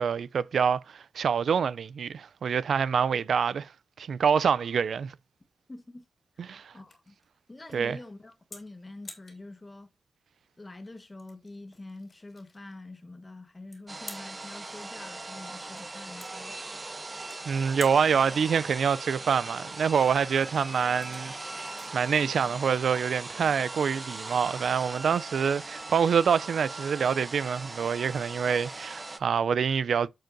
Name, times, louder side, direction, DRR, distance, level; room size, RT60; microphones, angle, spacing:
voice 1, 0.0-3.7 4.0-5.1 6.4-6.7 7.7-8.0 17.5-21.3 21.6-30.1, right 7 dB, 80° right, 0.4 m, -26 dB
sound 1, 5.4-23.4, left 3 dB, 40° left, 2.9 m, -52 dB
voice 2, 5.7-6.0 6.4-7.1 7.5-9.9 10.6-16.6, left 2 dB, 20° left, 1.2 m, -46 dB
sound 2, 13.9-29.2, right 2 dB, 20° right, 0.7 m, -40 dB
9.1 x 7.7 x 2.6 m
wide cardioid pair, 170°, 0 cm